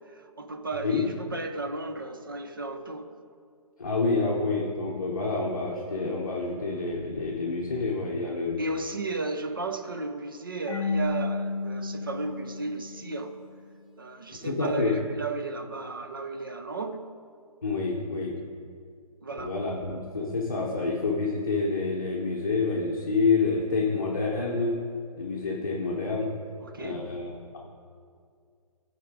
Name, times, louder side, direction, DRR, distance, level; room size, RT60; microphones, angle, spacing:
voice 1, 0.1-3.1 8.6-13.4 14.0-17.2 19.2-19.5 26.6-27.1, right 2 dB, 35° right, 7 dB, 0.6 m, -34 dB
voice 2, 3.8-8.6 14.3-14.9 17.6-18.4 19.4-24.7 25.2-26.3 26.7-27.6, left 4 dB, 30° left, -4 dB, 0.8 m, -28 dB
Marimba xylophone / Wood, 10.7-13.4, left 3 dB, 15° left, 2.0 m, -32 dB
14.0 x 4.9 x 4.8 m, 2.2 s
hypercardioid pair, 180°, 20 cm